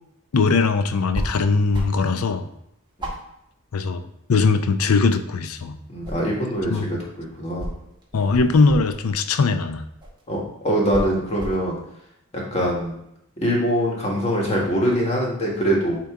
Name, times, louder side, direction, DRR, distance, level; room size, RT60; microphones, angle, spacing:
voice 1, 0.3-2.5 3.7-4.0 4.3-5.8 6.7-6.9 8.1-9.9, left 4 dB, 75° left, 9 dB, 0.5 m, -20 dB
sound 1, 1.1-1.4 1.7-2.1 2.4-2.5 3.0-4.3 4.7-5.5 5.8-6.8 7.6-9.2 10.0-10.2 10.9-11.7, equal, 20° right, 1.0 m, -32 dB
voice 2, 5.9-7.7 10.3-11.8 12.5-13.0 13.4-16.0, equal, 30° left, -3 dB, 1.5 m, -23 dB
8.6 x 3.0 x 3.6 m, 0.78 s
head